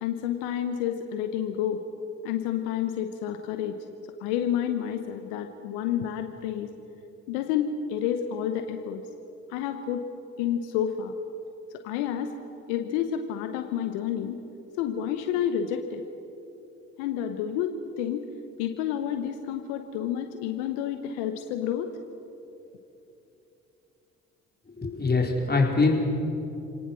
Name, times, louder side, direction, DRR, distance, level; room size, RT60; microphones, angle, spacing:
voice 1, 0.0-1.8 2.2-3.8 4.2-6.7 7.3-9.0 9.5-10.1 10.4-11.2 11.7-12.3 12.7-14.4 14.8-16.0 17.0-18.2 18.6-21.9, left 9 dB, 80° left, 7 dB, 1.0 m, -29 dB
voice 2, 24.8-26.0, left 3 dB, 25° left, 0 dB, 4.8 m, -23 dB
28.0 x 18.0 x 6.3 m, 2.9 s
hypercardioid pair, 45°, 36 cm